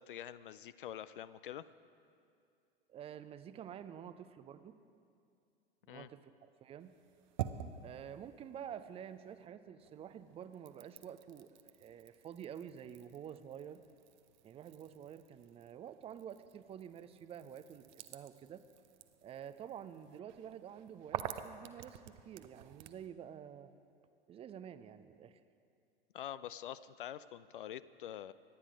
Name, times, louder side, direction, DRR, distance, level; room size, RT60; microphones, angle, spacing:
voice 1, 0.0-1.7 5.9-6.1 26.1-28.3, left 11 dB, 60° left, 15 dB, 0.5 m, -46 dB
voice 2, 2.9-4.8 5.9-6.9 7.7-13.8 14.4-18.6 19.2-23.7 24.3-25.4, right 9 dB, 20° right, 12 dB, 0.5 m, -49 dB
sound 1, 6.8-9.5 9.8-23.1, right 11 dB, 50° right, 0.7 m, -49 dB
24.5 x 9.9 x 4.9 m, 2.4 s
figure-of-eight pair, 85°, 29 cm